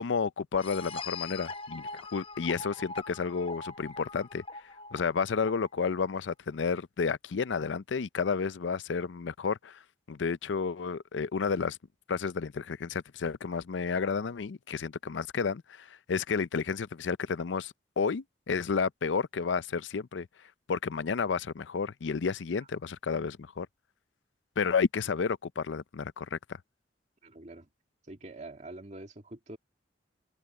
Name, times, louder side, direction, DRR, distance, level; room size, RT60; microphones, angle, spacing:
voice 1, 0.0-4.4 4.9-9.8 10.1-11.8 12.1-20.3 20.7-23.7 24.6-26.4, left 5 dB, 90° left, 0.5 m, -31 dB
sound 1, 0.5-6.0, left 4 dB, 30° left, 0.8 m, -42 dB
voice 2, 27.2-27.7 28.1-29.6, right 2 dB, 40° right, 2.1 m, -45 dB
head